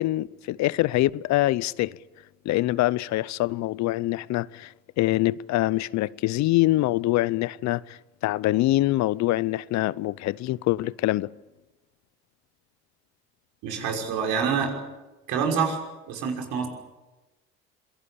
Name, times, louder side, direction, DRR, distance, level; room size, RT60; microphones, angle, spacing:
voice 1, 0.0-2.0 2.4-11.3, left 17 dB, 65° left, 0.7 m, -24 dB
voice 2, 13.6-14.7 15.3-15.8 16.1-16.7, right 6 dB, 75° right, 5.9 m, -26 dB
26.0 x 18.5 x 8.6 m
supercardioid pair, 75°, 30 cm